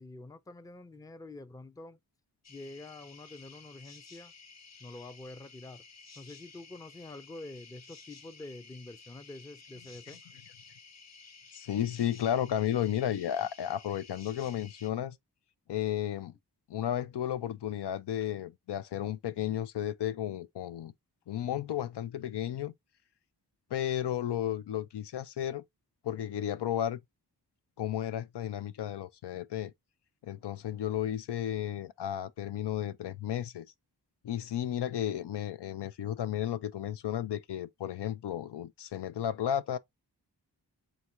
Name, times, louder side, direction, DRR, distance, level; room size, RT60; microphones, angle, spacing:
voice 1, 0.0-2.0 2.5-4.3 4.8-5.8 6.2-10.3, left 2 dB, 10° left, 0.4 m, -47 dB
sound 1, 2.4-14.9, left 4 dB, 40° left, 0.9 m, -54 dB
voice 2, 11.5-15.2 15.7-16.3 16.7-20.9 21.3-22.7 23.7-25.6 26.0-27.0 27.8-29.7 30.2-33.7 34.2-39.8, left 10 dB, 80° left, 0.5 m, -33 dB
3.6 x 2.6 x 4.4 m
cardioid pair, 65°, 40 cm